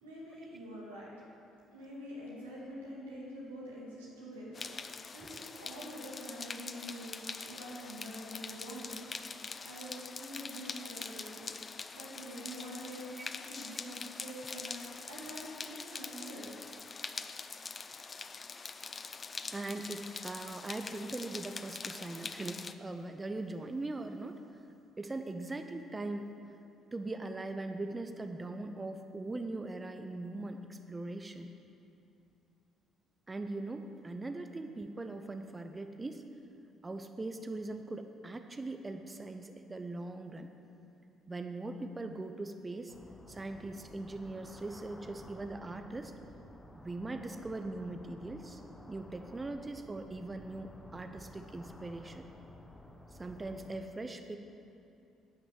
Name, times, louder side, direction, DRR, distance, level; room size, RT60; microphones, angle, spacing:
voice 1, 0.0-1.1 1.7-4.7 5.1-9.0 9.6-13.1 13.5-14.8 15.1-16.5, equal, 85° right, -6 dB, 2.3 m, -46 dB
sound 1, 4.5-22.7, left 4 dB, 35° left, 0.5 m, -44 dB
voice 2, 19.5-24.4 25.0-26.3 26.9-31.5 33.3-36.2 36.8-40.5 41.3-42.9 43.3-46.1 46.7-48.6 48.9-52.3 53.2-54.4, right 2 dB, 25° right, 7 dB, 0.7 m, -40 dB
sound 2, 42.9-53.8, left 1 dB, 15° left, 1.0 m, -53 dB
10.5 x 6.0 x 7.6 m, 2.7 s
hypercardioid pair, 50°, 0 cm